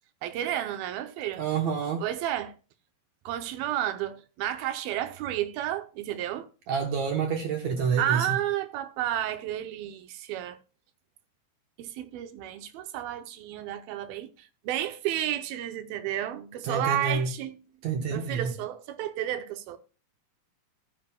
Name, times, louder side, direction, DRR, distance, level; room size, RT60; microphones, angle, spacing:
voice 1, 0.2-1.5 2.0-2.5 3.3-6.5 8.0-10.6 11.8-17.6 18.1-19.8, right 12 dB, 80° right, 2.5 m, -31 dB
voice 2, 1.4-2.0 6.7-8.4 16.6-17.3 17.8-18.5, right 6 dB, 65° right, 1.9 m, -28 dB
15.5 x 9.6 x 2.3 m
omnidirectional pair, 4.3 m